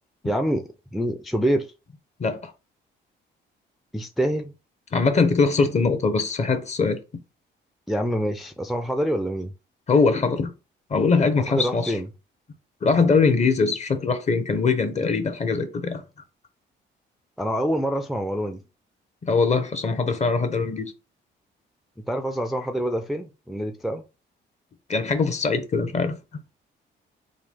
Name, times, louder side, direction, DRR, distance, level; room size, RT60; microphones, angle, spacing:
voice 1, 0.2-1.7 3.9-4.5 7.9-9.5 11.5-12.1 17.4-18.6 22.1-24.0, equal, ahead, 0.4 m, -26 dB
voice 2, 2.2-2.5 4.9-7.0 9.9-10.5 10.9-12.0 12.8-16.0 19.2-20.9 24.9-26.2, left 4 dB, 35° left, 0.7 m, -22 dB
3.7 x 2.3 x 3.3 m
cardioid pair, 90°, 20 cm